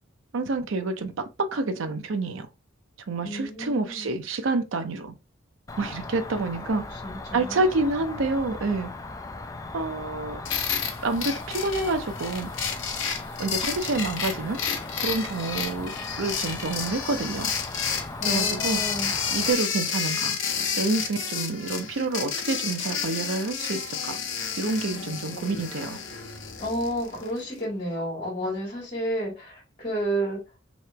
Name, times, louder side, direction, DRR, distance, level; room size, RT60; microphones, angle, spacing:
voice 1, 0.3-2.5 3.1-5.1 5.8-7.0 7.3-8.9 9.7-10.4 11.0-12.5 13.4-14.6 15.0-17.5 18.3-18.8 19.3-20.4 20.8-24.2 24.6-26.0, right 3 dB, 75° right, 0.5 m, -28 dB
voice 2, 3.2-4.1 6.9-7.7 18.2-19.1 26.6-30.4, right 1 dB, 35° left, 1.8 m, -31 dB
Cricket, 5.7-19.5, left 2 dB, 15° left, 0.3 m, -38 dB
sound 1, 10.4-27.4, left 7 dB, 70° left, 0.8 m, -31 dB
3.1 x 2.9 x 3.2 m
head